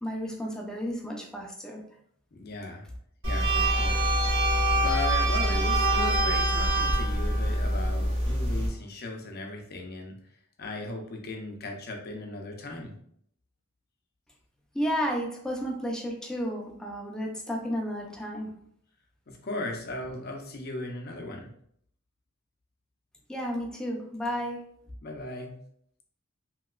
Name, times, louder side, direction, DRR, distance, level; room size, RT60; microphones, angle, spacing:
voice 1, 0.0-1.8 14.7-18.5 23.3-24.6, equal, 5° left, -1 dB, 0.5 m, -32 dB
voice 2, 2.3-2.8 3.2-4.0 4.7-10.2 10.6-12.9 19.3-21.5 25.0-25.6, left 2 dB, 50° left, 2 dB, 0.6 m, -37 dB
sound 1, 3.2-8.7, right 1 dB, 65° right, 1.0 m, -25 dB
3.0 x 2.8 x 2.4 m, 0.67 s
head